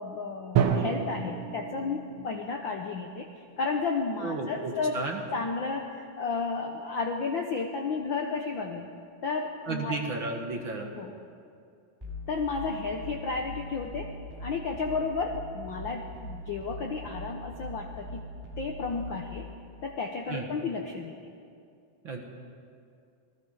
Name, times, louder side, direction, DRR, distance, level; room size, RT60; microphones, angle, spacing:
voice 1, 0.0-3.3 3.6-5.0 5.3-8.9 9.2-10.0 11.0-11.1 12.3-14.1 14.4-18.2 18.6-19.4 19.8-21.2, left 4 dB, 90° left, 3 dB, 1.0 m, -32 dB
Drum, 0.6-2.5, right 8 dB, 60° right, 1.7 m, -28 dB
voice 2, 4.2-5.2 9.7-10.9 20.3-20.4 22.0-22.2, right 3 dB, 45° right, 2 dB, 1.9 m, -33 dB
sound 1, 12.0-19.4, equal, 5° right, 3.2 m, -41 dB
27.5 x 19.5 x 4.9 m, 2.4 s
omnidirectional pair, 3.7 m